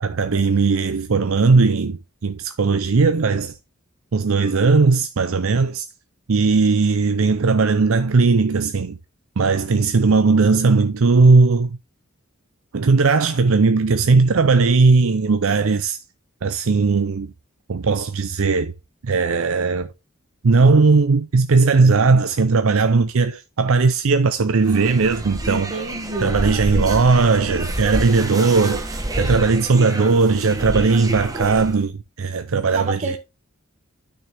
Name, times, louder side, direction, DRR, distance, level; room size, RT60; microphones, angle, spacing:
voice 1, 0.0-3.5 4.1-5.9 6.3-9.0 9.4-11.8 12.7-16.0 16.4-17.3 17.7-18.7 19.0-19.9 20.4-25.7 26.2-33.2, right 4 dB, 65° right, 0.6 m, -18 dB
sound 1, 24.6-31.8, right 1 dB, 15° right, 1.1 m, -28 dB
voice 2, 25.4-26.5 32.7-33.2, right 2 dB, 35° right, 1.9 m, -28 dB
9.1 x 6.4 x 3.4 m
head